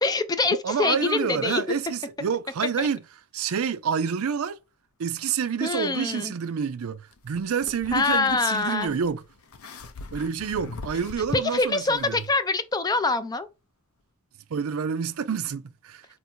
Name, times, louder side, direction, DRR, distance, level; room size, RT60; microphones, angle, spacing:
voice 1, 0.0-1.6 2.8-2.9 5.6-6.3 7.9-8.9 11.3-13.5, left 3 dB, 20° left, 0.3 m, -25 dB
voice 2, 0.6-3.0 3.3-4.6 5.0-9.2 10.1-12.2 14.5-16.1, right 6 dB, 70° right, 0.4 m, -28 dB
sound 1, 7.1-12.3, left 3 dB, 75° left, 0.6 m, -43 dB
4.4 x 2.6 x 4.3 m
head